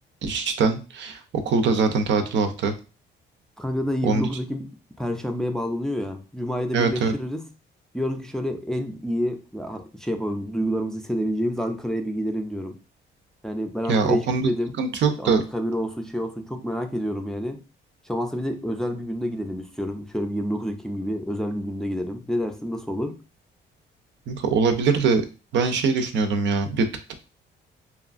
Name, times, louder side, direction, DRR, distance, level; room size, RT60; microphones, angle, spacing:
voice 1, 0.2-2.7 4.0-4.3 6.7-7.1 13.9-14.5 14.8-15.4 24.3-25.2 25.5-27.1, right 4 dB, 65° right, 7 dB, 0.5 m, -22 dB
voice 2, 3.6-4.7 5.0-7.4 7.9-12.8 13.4-14.7 15.2-17.6 18.0-23.2, equal, 5° left, 5 dB, 0.4 m, -28 dB
2.8 x 2.3 x 2.5 m, 0.32 s
cardioid pair, 90°, 20 cm